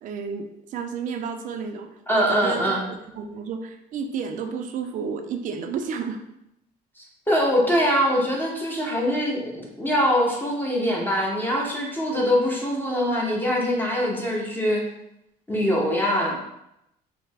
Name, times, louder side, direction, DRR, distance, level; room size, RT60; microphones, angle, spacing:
voice 1, 0.0-1.9 2.1-6.2, right 6 dB, 50° right, 6 dB, 0.4 m, -31 dB
voice 2, 2.1-2.8 7.0-14.9 15.5-16.4, equal, 10° left, -2 dB, 0.6 m, -23 dB
3.2 x 2.0 x 3.3 m, 0.82 s
cardioid pair, 110°, 17 cm